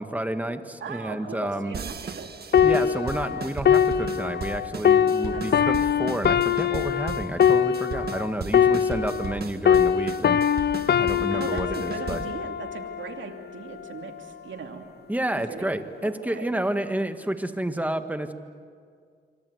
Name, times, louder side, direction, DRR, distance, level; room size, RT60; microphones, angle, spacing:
voice 1, 0.0-1.8 2.6-10.4 11.0-12.2 15.1-18.3, right 1 dB, 10° right, 7 dB, 1.8 m, -30 dB
voice 2, 0.8-2.3 5.3-5.8 11.3-14.8 15.3-15.7 16.0-16.6, right 5 dB, 90° right, 4 dB, 2.7 m, -39 dB
sound 1, 1.7-12.4, right 5 dB, 55° right, 1.8 m, -37 dB
sound 2, 2.5-9.4 9.7-13.2 13.9-14.1, left 8 dB, 60° left, 0.7 m, -22 dB
27.0 x 25.5 x 8.1 m, 2.1 s
cardioid pair, 85°, 19 cm